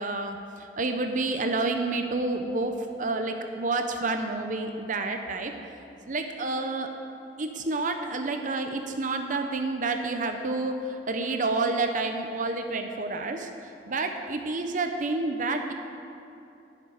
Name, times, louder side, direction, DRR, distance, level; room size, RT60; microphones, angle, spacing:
voice 1, 0.0-2.7 3.0-5.5 6.1-6.9 7.4-15.7, right 3 dB, 45° right, 5 dB, 0.7 m, -29 dB
11.5 x 6.7 x 9.1 m, 2.8 s
head